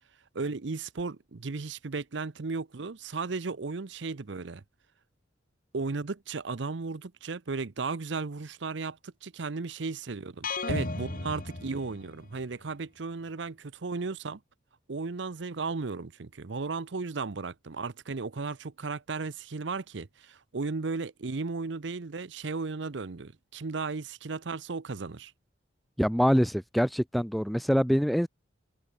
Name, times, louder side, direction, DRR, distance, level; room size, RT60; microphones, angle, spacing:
voice 1, 0.3-4.6 5.7-14.4 14.9-25.3, right 4 dB, 65° right, 0.7 m, -35 dB
sound 1, 10.4-12.4, left 2 dB, 45° left, 2.2 m, -34 dB
voice 2, 26.0-28.3, equal, ahead, 0.3 m, -25 dB
head